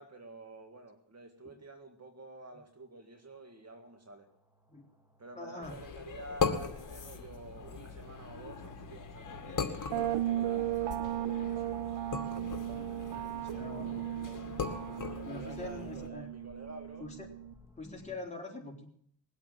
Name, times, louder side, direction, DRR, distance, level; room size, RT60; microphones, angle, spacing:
voice 1, 0.0-4.3 5.2-12.2 12.8-13.9 15.1-17.1, right 2 dB, 35° right, 4 dB, 1.9 m, -50 dB
sound 1, 3.9-18.2, right 1 dB, 5° right, 2.2 m, -56 dB
voice 2, 5.3-5.8 13.3-14.1 15.2-16.3 17.0-17.3 17.8-18.9, left 2 dB, 15° left, -1 dB, 4.0 m, -44 dB
sound 2, 5.6-16.1, left 5 dB, 45° left, 2.2 m, -39 dB
sound 3, 9.9-17.5, right 13 dB, 70° right, 0.7 m, -36 dB
21.0 x 8.2 x 7.6 m, 0.66 s
cardioid pair, 100°, 44 cm